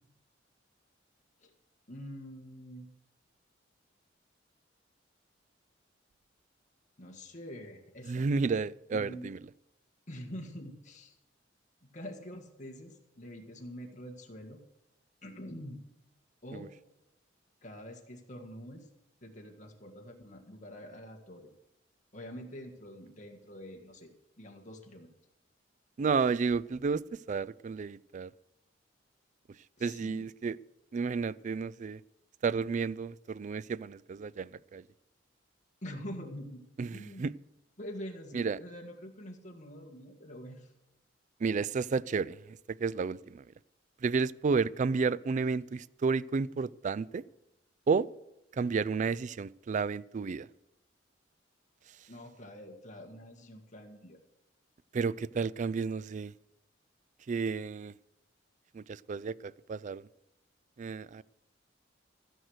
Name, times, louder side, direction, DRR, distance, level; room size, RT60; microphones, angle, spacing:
voice 1, 1.9-2.9 7.0-8.3 8.9-9.3 10.1-11.2 11.8-14.6 15.2-15.8 16.4-16.7 17.6-18.9 19.2-21.5 22.1-24.1 24.4-25.1 29.8-30.3 35.8-36.6 36.9-37.3 37.8-40.7 52.1-54.2, equal, 40° left, 1.8 m, -45 dB
voice 2, 8.1-9.4 16.5-16.7 26.0-28.3 29.8-30.6 30.9-32.0 32.4-34.8 36.8-37.3 38.3-38.6 41.4-42.4 42.8-43.4 44.0-47.2 47.9-48.1 48.6-50.5 54.9-56.3 57.3-58.0 58.7-60.1 60.8-61.2, right 5 dB, 40° right, 0.3 m, -31 dB
15.0 x 6.4 x 8.0 m
head